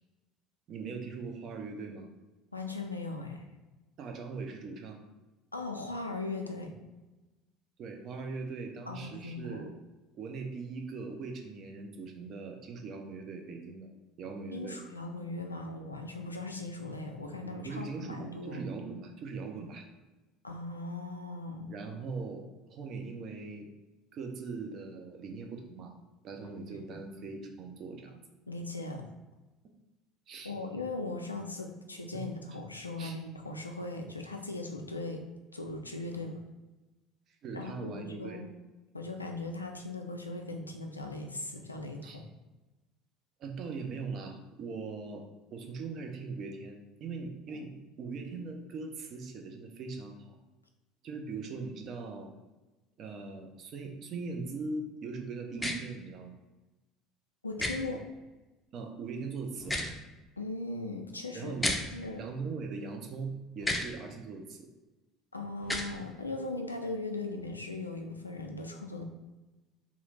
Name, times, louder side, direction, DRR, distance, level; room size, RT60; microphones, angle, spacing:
voice 1, 0.7-2.1 4.0-5.0 7.8-9.7 10.2-13.9 14.2-14.8 17.4-19.9 21.7-23.7 24.1-25.9 26.2-28.2 30.3-30.5 32.1-32.2 33.0-33.2 37.4-38.4 42.0-42.2 43.4-45.2 45.5-50.4 51.0-52.3 53.0-56.4 58.7-59.8 61.3-61.7 62.2-64.7, right 4 dB, 45° right, 3 dB, 0.5 m, -40 dB
voice 2, 2.5-3.5 5.5-6.8 8.9-9.6 14.5-18.7 20.4-21.7 26.4-26.5 28.5-29.0 30.4-35.2 35.5-36.4 37.5-38.5 38.9-42.3 57.4-58.0 60.4-61.6 61.9-62.2 65.3-69.0, left 2 dB, 85° left, 3 dB, 0.3 m, -39 dB
sound 1, 55.6-55.8 57.6-57.7 59.6-59.9 61.6-61.8 63.6-63.9 65.6-65.9, left 1 dB, 10° left, 0.5 m, -31 dB
2.9 x 2.4 x 4.0 m, 1.1 s
figure-of-eight pair, 65°, 0 cm